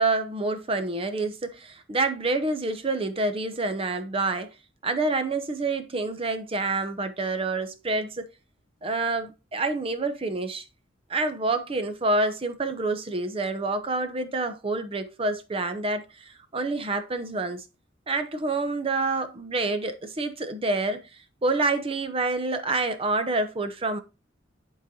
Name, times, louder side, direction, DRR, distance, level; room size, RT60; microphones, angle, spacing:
voice 1, 0.0-4.5 4.8-8.3 8.8-10.6 11.1-17.6 18.1-21.0 21.4-24.0, right 3 dB, 30° right, 0.6 m, -27 dB
10.0 x 3.9 x 2.7 m
head